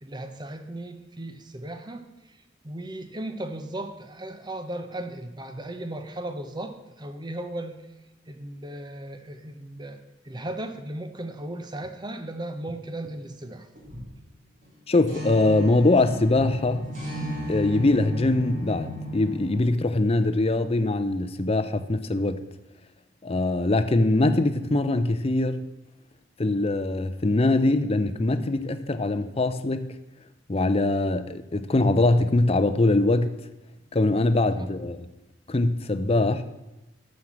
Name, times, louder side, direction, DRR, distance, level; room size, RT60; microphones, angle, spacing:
voice 1, 0.0-2.1 2.6-7.8 8.3-13.7 34.6-34.7, right 1 dB, 25° right, 0.9 m, -36 dB
sound 1, 13.7-14.2 14.6-14.7 15.1-19.6, equal, 45° right, 3.4 m, -34 dB
voice 2, 14.9-16.9 17.5-22.4 23.2-25.6 26.4-29.9 30.5-33.3 33.9-35.0 35.5-36.4, left 2 dB, 30° left, 0.6 m, -22 dB
9.5 x 6.5 x 7.4 m
head